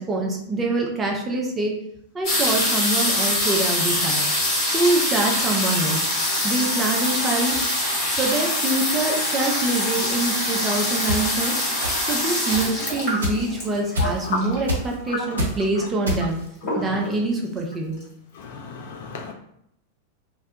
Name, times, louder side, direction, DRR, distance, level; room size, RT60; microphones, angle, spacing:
voice 1, 0.0-1.7 2.1-4.3 4.7-6.0 6.4-7.6 8.1-11.6 12.1-16.4 16.8-18.0, right 2 dB, 20° right, 0.5 m, -25 dB
sound 1, 2.2-14.8 15.6-15.7 15.9-16.3 16.6-17.2 17.7-17.8 18.0-18.1, left 1 dB, 40° left, 1.2 m, -24 dB
sound 2, 11.1-11.2 11.8-12.2 12.5-12.7 13.2-13.5 14.0-14.3 14.7-14.9 15.4-15.6 16.1-16.5, equal, 70° right, 0.6 m, -25 dB
voice 2, 18.5-19.3, left 4 dB, 55° left, 0.3 m, -33 dB
2.2 x 2.1 x 2.7 m
figure-of-eight pair, 90°, 0 cm